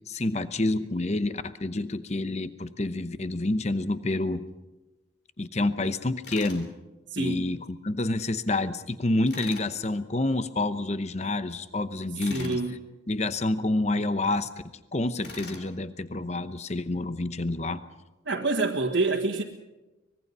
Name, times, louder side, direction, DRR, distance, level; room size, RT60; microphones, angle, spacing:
voice 1, 0.1-4.4 5.4-6.7 7.2-12.6 13.1-14.5 14.9-17.8, left 2 dB, 35° left, 0.9 m, -28 dB
Tools, 6.2-6.6 9.3-9.7 12.2-12.6 15.2-15.7, left 3 dB, 55° left, 3.4 m, -42 dB
voice 2, 7.1-7.5 12.3-12.8 18.3-19.4, right 3 dB, 75° right, 1.8 m, -27 dB
24.5 x 21.0 x 5.5 m
head